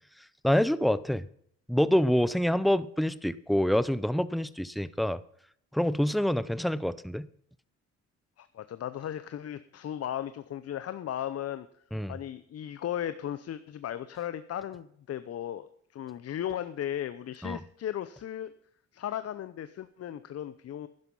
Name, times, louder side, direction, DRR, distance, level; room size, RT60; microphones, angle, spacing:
voice 1, 0.4-1.2 1.7-5.2 5.7-7.3 11.9-12.2 17.4-17.6, equal, ahead, 16 dB, 0.6 m, -26 dB
voice 2, 8.4-11.7 12.1-18.5 18.9-20.9, left 10 dB, 55° left, 12 dB, 0.7 m, -36 dB
11.5 x 11.0 x 5.5 m, 0.64 s
cardioid pair, 90°, 30 cm